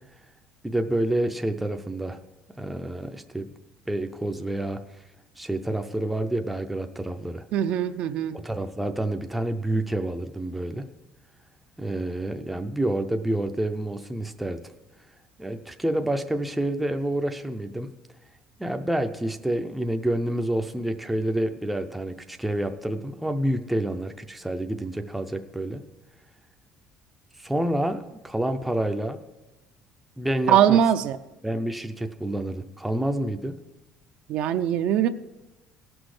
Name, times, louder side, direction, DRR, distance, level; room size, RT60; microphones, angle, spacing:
voice 1, 0.6-2.2 2.6-3.5 3.9-4.8 5.4-7.4 8.3-10.8 11.8-14.6 15.4-17.9 18.6-25.8 27.4-29.2 30.2-30.8 31.4-33.5, right 1 dB, 5° right, 6 dB, 0.4 m, -28 dB
voice 2, 7.5-8.4 30.5-31.2 34.3-35.1, right 10 dB, 55° right, 10 dB, 0.5 m, -21 dB
17.5 x 6.2 x 4.8 m, 1.0 s
cardioid pair, 165°, 2 cm